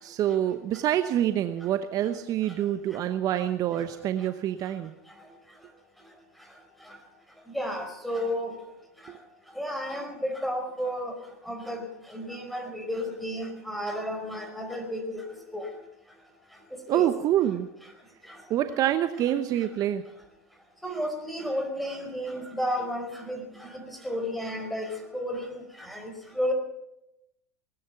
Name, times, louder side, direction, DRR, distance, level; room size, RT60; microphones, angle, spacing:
voice 1, 0.0-4.9 9.1-9.2 16.9-17.7 18.5-20.0, right 11 dB, 45° right, 10 dB, 0.9 m, -26 dB
voice 2, 7.5-8.5 9.6-11.2 11.5-11.8 12.1-15.2 15.5-15.7 16.9-17.1 20.8-23.4 23.7-25.6 25.9-26.5, equal, ahead, 4 dB, 4.4 m, -32 dB
19.5 x 10.0 x 7.1 m, 0.86 s
hypercardioid pair, 90°, 9 cm